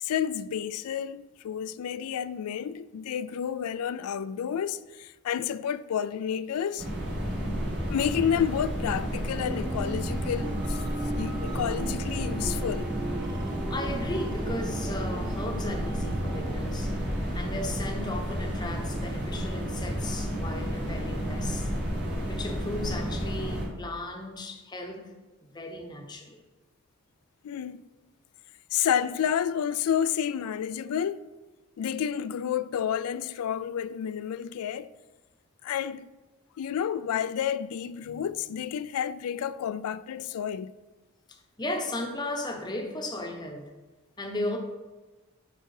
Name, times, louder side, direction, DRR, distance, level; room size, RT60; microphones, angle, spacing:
voice 1, 0.0-6.9 7.9-10.8 11.2-12.9 27.4-27.9 28.7-31.2 31.8-34.9 35.6-36.1 36.6-40.7, left 8 dB, 80° left, 0.3 m, -30 dB
sound 1, 6.8-23.7, equal, 50° right, 1.8 m, -31 dB
sound 2, 9.5-16.5, right 3 dB, 20° right, 0.4 m, -39 dB
voice 2, 13.7-16.9 17.3-21.7 22.3-25.1 25.4-26.4 41.6-43.7 44.2-44.6, left 2 dB, 20° left, 0.7 m, -35 dB
6.7 x 4.9 x 4.7 m
head